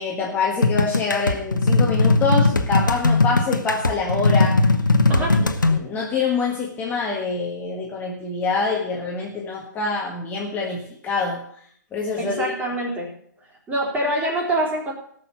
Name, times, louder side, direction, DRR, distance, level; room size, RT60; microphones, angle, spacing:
voice 1, 0.0-4.6 5.1-11.4 11.9-12.5, left 4 dB, 15° left, -2 dB, 1.7 m, -26 dB
sound 1, 0.6-5.8, left 3 dB, 85° left, 1.1 m, -19 dB
voice 2, 5.1-5.4 12.2-13.1 13.7-14.9, right 1 dB, 15° right, -2 dB, 3.7 m, -25 dB
17.0 x 6.6 x 5.8 m, 0.63 s
figure-of-eight pair, 125°, 10 cm